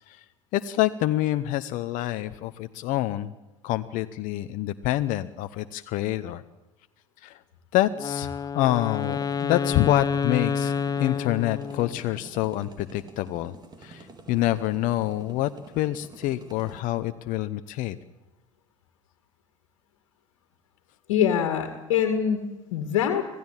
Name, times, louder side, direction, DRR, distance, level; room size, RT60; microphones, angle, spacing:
voice 1, 0.5-3.3 3.6-6.4 7.2-7.4 7.7-13.5 13.8-18.0, left 15 dB, 55° left, 11 dB, 0.9 m, -27 dB
Wind instrument woodwind instrument, 8.0-12.1, left 6 dB, 25° left, 0.8 m, -29 dB
sound 1, 8.7-16.8, right 3 dB, 25° right, 4.2 m, -48 dB
voice 2, 21.1-23.3, left 8 dB, 70° left, 6 dB, 2.1 m, -24 dB
26.0 x 17.0 x 7.4 m, 1.1 s
hypercardioid pair, 75°, 16 cm